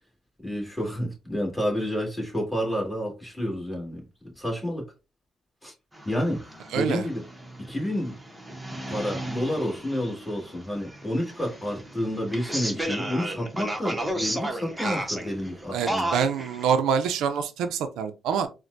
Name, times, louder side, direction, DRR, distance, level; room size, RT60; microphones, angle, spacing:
voice 1, 0.4-4.0 4.4-4.8 5.6-5.7 6.1-6.4 6.7-7.2 7.6-8.2 8.7-16.1, equal, 10° left, 1.9 m, -29 dB
sound 1, 5.9-16.6, right 1 dB, 10° right, 0.9 m, -34 dB
voice 2, 6.7-7.1 14.8-15.0 15.7-18.5, right 7 dB, 85° right, 0.4 m, -26 dB
4.4 x 2.1 x 2.6 m
cardioid pair, 90°, 0 cm